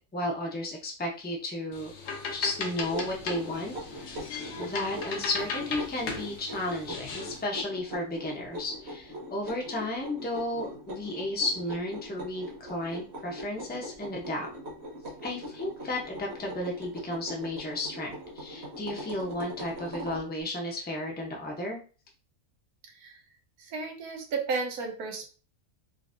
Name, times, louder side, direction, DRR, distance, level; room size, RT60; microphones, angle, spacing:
voice 1, 0.0-1.9 2.3-4.3 4.6-14.5 15.2-21.8, left 1 dB, 15° left, -1 dB, 0.4 m, -33 dB
sound 1, 1.7-7.4, left 4 dB, 65° left, 1.0 m, -37 dB
sound 2, 2.8-20.2, equal, 50° right, 1.2 m, -41 dB
voice 2, 23.6-25.3, right 4 dB, 85° right, 2 dB, 1.3 m, -33 dB
3.8 x 2.6 x 2.5 m, 0.37 s
omnidirectional pair, 1.5 m